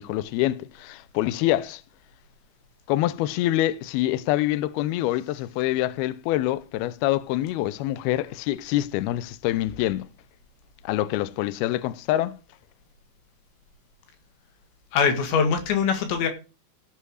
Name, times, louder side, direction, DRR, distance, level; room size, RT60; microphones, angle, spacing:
voice 1, 0.0-1.8 2.9-10.1 10.8-12.4, left 15 dB, 90° left, 2.2 m, -25 dB
voice 2, 14.9-16.3, left 6 dB, 70° left, 4.2 m, -22 dB
16.0 x 5.6 x 6.4 m
omnidirectional pair, 5.4 m